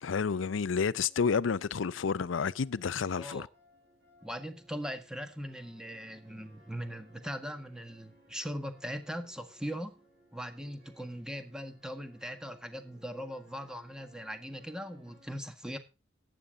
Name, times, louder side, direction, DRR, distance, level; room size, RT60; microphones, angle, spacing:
voice 1, 0.0-3.5, left 5 dB, 85° left, 0.5 m, -30 dB
sound 1, 1.0-15.3, right 1 dB, 65° right, 7.9 m, -63 dB
voice 2, 3.2-3.5 4.2-10.0 10.3-15.8, equal, 5° right, 1.7 m, -40 dB
14.5 x 10.5 x 3.7 m
head